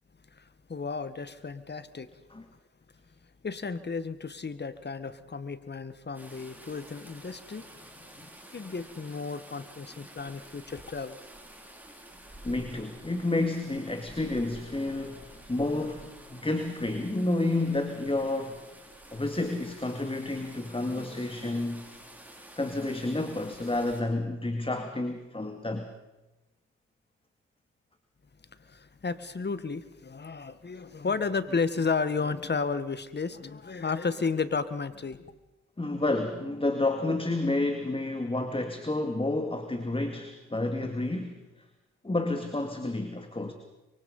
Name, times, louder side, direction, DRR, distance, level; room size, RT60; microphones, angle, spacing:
voice 1, 0.3-2.1 3.4-7.6 7.9-8.1 8.5-11.2 28.6-35.3, left 4 dB, 35° left, 14 dB, 1.7 m, -33 dB
sound 1, 6.1-24.0, right 1 dB, 5° right, 6.1 m, -50 dB
voice 2, 12.4-18.6 19.1-21.9 22.6-25.9 30.7-30.8 35.8-41.4 42.0-43.5, left 2 dB, 15° left, 6 dB, 2.4 m, -30 dB
25.0 x 23.5 x 5.6 m, 1.0 s
supercardioid pair, 55°, 31 cm